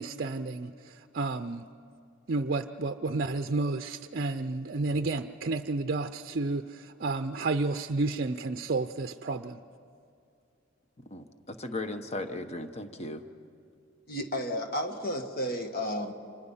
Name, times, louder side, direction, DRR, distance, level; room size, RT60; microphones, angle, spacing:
voice 1, 0.0-1.7 2.3-9.6, right 3 dB, 50° right, 0.5 m, -31 dB
voice 2, 11.1-13.2, left 2 dB, 35° left, 1.1 m, -37 dB
voice 3, 14.1-16.1, equal, 50° left, 1.8 m, -32 dB
30.0 x 25.5 x 5.7 m
head